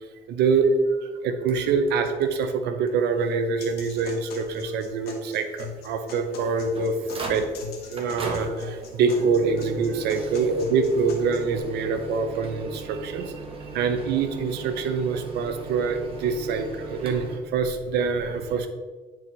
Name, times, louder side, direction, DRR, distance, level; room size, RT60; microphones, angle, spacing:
voice 1, 0.3-7.5 7.9-13.3 13.7-18.7, right 5 dB, 80° right, 8 dB, 0.8 m, -25 dB
sound 1, 1.5-2.5 2.9-3.0 3.2-3.3 4.0-4.1 6.1-17.4, right 2 dB, 35° right, 1.2 m, -38 dB
sound 2, 3.6-11.6, left 7 dB, 70° left, 1.3 m, -42 dB
9.2 x 4.6 x 3.2 m, 1.4 s
cardioid pair, 110°, 17 cm